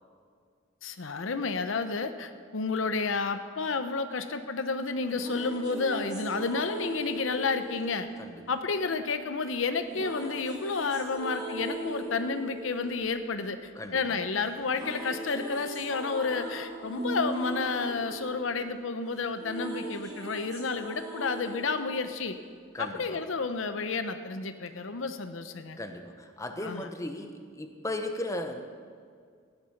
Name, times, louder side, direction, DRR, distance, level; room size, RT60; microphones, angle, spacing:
voice 1, 0.8-8.1 8.5-22.4 22.8-25.8 26.6-26.9, left 4 dB, 75° left, 9 dB, 0.8 m, -31 dB
sound 1, 4.9-9.0 9.9-14.1 14.4-22.9, right 1 dB, 20° right, 3.0 m, -39 dB
voice 2, 13.7-14.2 22.7-23.2 25.8-28.6, left 1 dB, 15° left, 5 dB, 0.9 m, -36 dB
15.0 x 10.5 x 5.8 m, 2.1 s
head